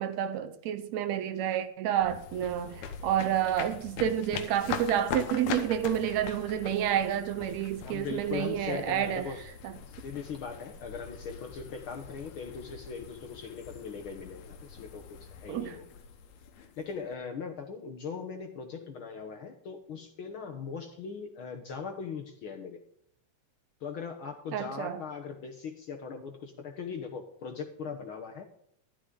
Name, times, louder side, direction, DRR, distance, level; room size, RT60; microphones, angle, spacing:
voice 1, 0.0-9.3 15.5-15.8 24.5-25.0, right 10 dB, 75° right, 2.0 m, -29 dB
sound 1, 2.0-17.1, left 7 dB, 75° left, 2.4 m, -42 dB
voice 2, 7.8-9.5 10.0-15.9 16.6-22.8 23.8-28.4, left 5 dB, 60° left, 1.4 m, -40 dB
12.5 x 12.0 x 3.8 m
omnidirectional pair, 3.3 m